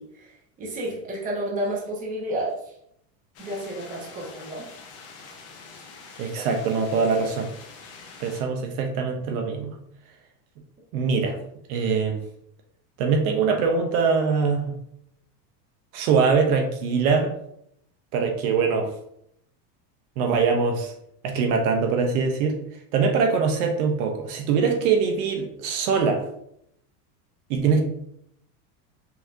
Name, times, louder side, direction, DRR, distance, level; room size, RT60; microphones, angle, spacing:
voice 1, 0.0-2.7 3.4-4.7, right 1 dB, 15° right, -3 dB, 0.9 m, -31 dB
sound 1, 3.3-8.4, left 4 dB, 30° left, 0.8 m, -45 dB
voice 2, 6.2-7.5 8.2-9.7 10.9-11.4 11.7-12.2 13.0-14.6 15.9-17.3 18.1-18.9 20.2-20.9 21.2-22.6 22.9-26.2 27.5-27.8, right 5 dB, 60° right, 3 dB, 0.8 m, -23 dB
5.6 x 2.7 x 2.5 m, 0.72 s
supercardioid pair, 155°, 48 cm